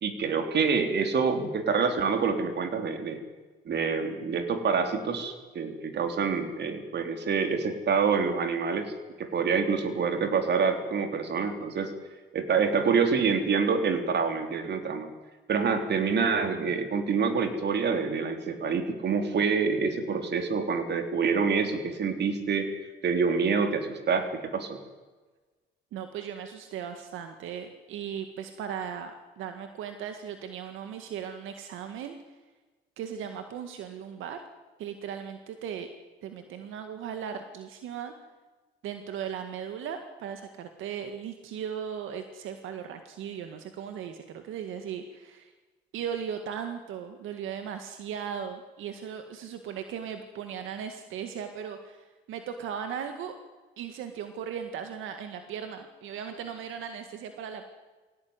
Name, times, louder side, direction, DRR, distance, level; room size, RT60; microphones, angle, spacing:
voice 1, 0.0-3.2 3.7-8.9 9.2-11.9 12.3-15.1 15.5-22.7 23.0-24.8, right 5 dB, 60° right, 6 dB, 3.7 m, -27 dB
voice 2, 25.9-32.2 33.0-34.4 34.8-35.9 36.2-38.1 38.8-45.5 45.9-53.4 53.8-57.7, right 8 dB, 90° right, 7 dB, 1.9 m, -37 dB
22.0 x 17.5 x 9.7 m, 1.3 s
cardioid pair, 90°, 20 cm